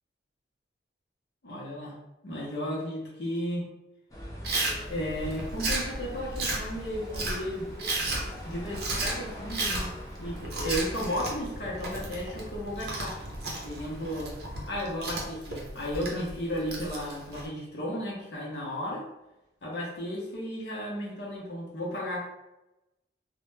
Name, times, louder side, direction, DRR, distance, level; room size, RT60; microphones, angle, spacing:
voice 1, 1.4-2.0 2.2-3.7 4.9-7.7 8.4-9.9 10.2-13.2 13.6-14.3 14.7-19.1 19.6-22.3, equal, 75° left, -4 dB, 0.6 m, -34 dB
sound 1, 4.1-14.9, equal, 20° left, 0.4 m, -43 dB
Chewing mastication, 4.4-17.5, right 2 dB, 55° right, 0.5 m, -34 dB
2.1 x 2.0 x 3.0 m, 0.96 s
head